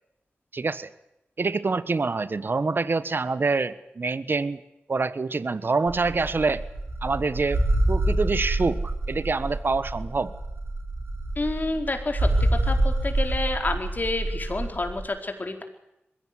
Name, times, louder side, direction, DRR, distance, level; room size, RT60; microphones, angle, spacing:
voice 1, 0.5-0.9 1.4-4.6 4.9-6.6 7.0-10.3, right 4 dB, 55° right, 15 dB, 1.3 m, -26 dB
sound 1, 5.9-15.0, right 1 dB, 70° right, 5.1 m, -27 dB
voice 2, 11.4-12.3 12.6-15.6, left 2 dB, 40° left, 5 dB, 4.4 m, -29 dB
22.0 x 16.5 x 10.0 m, 0.87 s
cardioid pair, 55°, 4 cm